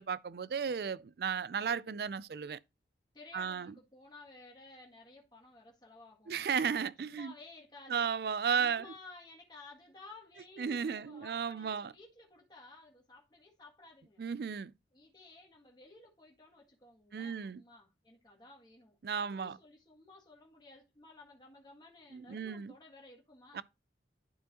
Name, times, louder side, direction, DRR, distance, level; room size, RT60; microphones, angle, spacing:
voice 1, 0.0-2.6 3.3-3.7 6.3-7.3 7.9-8.9 10.6-11.9 14.2-14.7 17.1-17.6 19.0-19.6 22.1-22.7 23.5-23.6, right 6 dB, 60° right, 0.4 m, -34 dB
voice 2, 3.1-8.1 8.5-14.2 14.9-23.6, left 3 dB, 25° left, 1.7 m, -55 dB
11.0 x 4.6 x 2.9 m
head